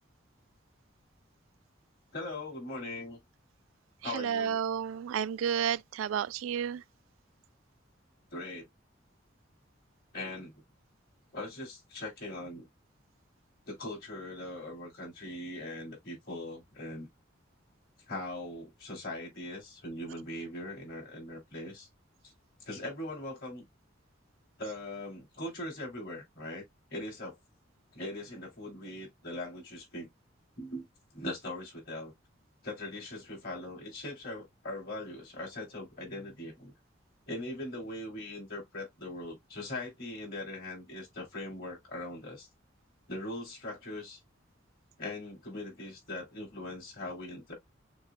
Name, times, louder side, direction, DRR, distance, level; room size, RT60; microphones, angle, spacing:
voice 1, 2.1-3.2 4.0-4.6 8.3-8.7 10.1-10.5 11.3-12.7 13.7-17.1 18.1-21.9 22.6-23.7 24.6-26.6 26.9-27.3 27.9-30.1 30.6-30.8 31.1-32.1 32.6-36.7 37.3-42.5 43.1-44.2 45.0-47.5, left 1 dB, 50° left, 3.3 m, -40 dB
voice 2, 4.0-6.8, right 8 dB, 90° right, 0.3 m, -31 dB
6.9 x 2.3 x 2.4 m
head